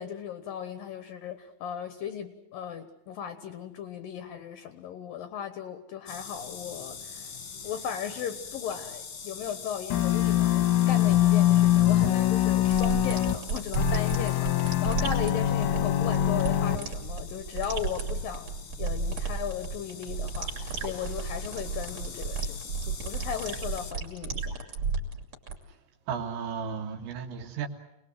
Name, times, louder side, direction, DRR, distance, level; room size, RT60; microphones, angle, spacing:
voice 1, 0.0-7.3 7.6-24.6, left 8 dB, 70° left, 9 dB, 2.2 m, -37 dB
sound 1, 6.1-23.9, left 5 dB, 45° left, 1.9 m, -43 dB
sound 2, 9.9-13.4 13.8-16.8, left 13 dB, 90° left, 4.1 m, -23 dB
sound 3, 12.6-25.5, right 5 dB, 35° right, 3.7 m, -33 dB
voice 2, 26.1-27.7, right 6 dB, 70° right, 4 dB, 3.9 m, -34 dB
27.5 x 20.0 x 7.8 m, 0.88 s
omnidirectional pair, 5.7 m